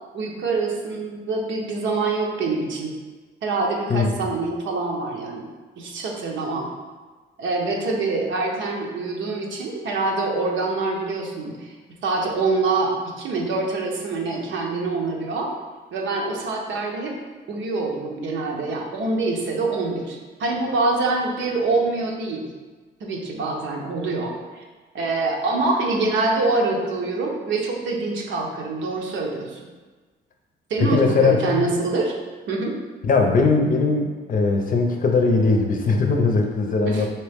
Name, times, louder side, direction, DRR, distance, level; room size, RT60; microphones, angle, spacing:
voice 1, 0.1-2.9 3.4-5.5 5.8-6.7 7.4-11.7 12.0-15.5 15.9-17.1 17.5-22.5 23.0-24.6 24.9-29.7 30.7-32.1 32.5-32.7 36.8-37.1, right 3 dB, 75° right, 0 dB, 0.9 m, -25 dB
voice 2, 30.8-31.6 33.0-37.1, left 4 dB, 45° left, 3 dB, 0.6 m, -20 dB
4.3 x 3.0 x 3.5 m, 1.3 s
cardioid pair, 90°, 20 cm